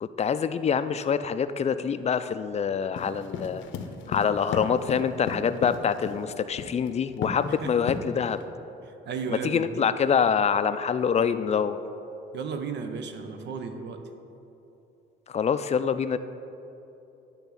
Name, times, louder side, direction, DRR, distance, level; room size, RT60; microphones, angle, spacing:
voice 1, 0.0-3.6 4.1-8.4 9.3-11.8 15.3-16.2, left 7 dB, 35° left, 12 dB, 0.4 m, -25 dB
sound 1, 3.0-6.2 6.6-6.9 7.2-7.5 7.9-8.4, left 7 dB, 75° left, 0.7 m, -33 dB
voice 2, 7.6-7.9 8.9-9.6 12.3-14.0, right 5 dB, 60° right, 7 dB, 0.7 m, -34 dB
10.0 x 3.5 x 6.9 m, 2.9 s
cardioid pair, 90°, 20 cm